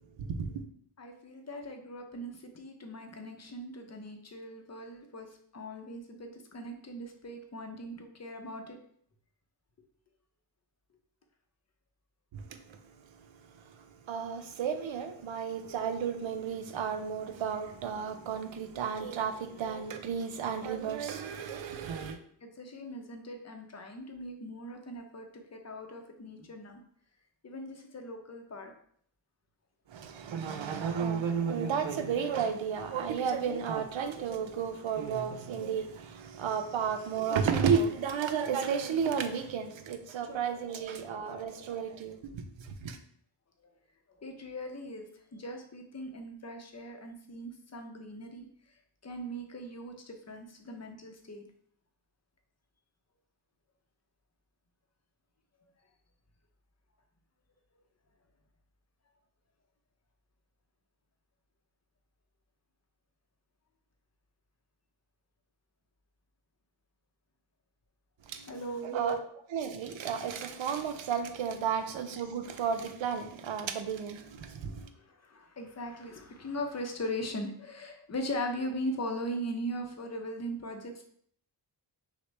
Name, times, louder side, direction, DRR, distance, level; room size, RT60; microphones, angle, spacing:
voice 1, 0.2-0.6 12.3-22.2 29.9-43.0 68.2-68.5 68.8-69.2 69.5-74.9, right 7 dB, 80° right, 0.6 m, -33 dB
voice 2, 1.0-8.8 22.1-26.8 27.4-28.7 40.3-41.7 43.6-43.7 44.2-48.5 49.0-51.4 68.5-69.0 74.9-81.0, equal, 35° left, 0.6 m, -40 dB
6.0 x 2.1 x 3.2 m
wide cardioid pair, 115°, 45 cm